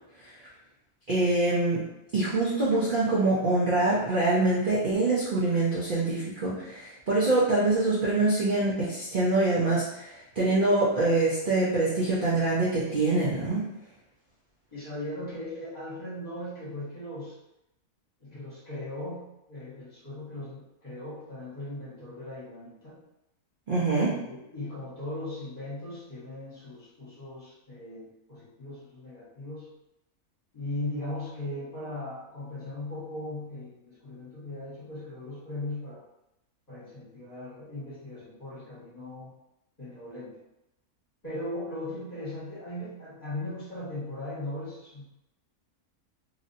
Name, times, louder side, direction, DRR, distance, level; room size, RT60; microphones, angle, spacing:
voice 1, 1.1-1.8 2.1-13.6 23.7-24.1, right 2 dB, 45° right, -8 dB, 0.7 m, -25 dB
voice 2, 14.7-17.4 18.2-23.0 23.9-29.7 30.5-36.0 36.7-39.3 39.8-40.4 41.2-45.0, left 1 dB, 30° left, -11 dB, 1.6 m, -38 dB
3.0 x 2.8 x 2.7 m, 0.89 s
omnidirectional pair, 1.6 m